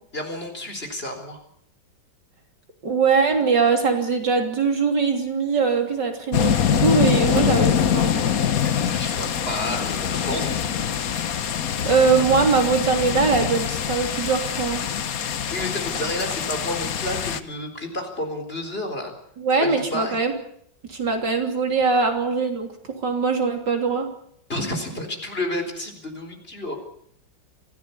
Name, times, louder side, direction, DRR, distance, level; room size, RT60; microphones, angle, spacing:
voice 1, 0.1-1.4 8.6-11.0 15.5-19.1 19.6-20.2 24.5-26.8, left 1 dB, 30° left, 4 dB, 4.5 m, -31 dB
voice 2, 2.8-8.1 11.9-14.9 19.4-20.3 20.9-22.7 23.0-24.1, right 5 dB, 70° right, 4 dB, 3.8 m, -21 dB
sound 1, 6.3-17.4, left 8 dB, 55° left, 1.4 m, -24 dB
25.0 x 16.5 x 8.4 m, 0.68 s
omnidirectional pair, 2.0 m